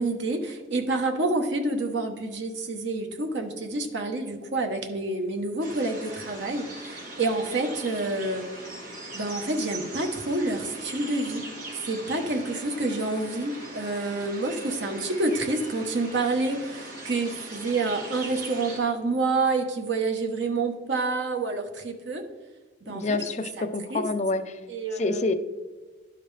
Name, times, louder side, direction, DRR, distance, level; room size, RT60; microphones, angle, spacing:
voice 1, 0.0-8.5 9.1-11.4 11.7-22.2 22.8-23.2 23.6-24.0 24.7-25.3, right 3 dB, 70° right, 3 dB, 0.9 m, -28 dB
sound 1, 5.6-18.8, right 2 dB, 45° right, 1.7 m, -40 dB
voice 2, 22.9-24.6 25.0-25.3, left 3 dB, 35° left, 9 dB, 0.4 m, -27 dB
11.5 x 5.0 x 3.3 m, 1.3 s
head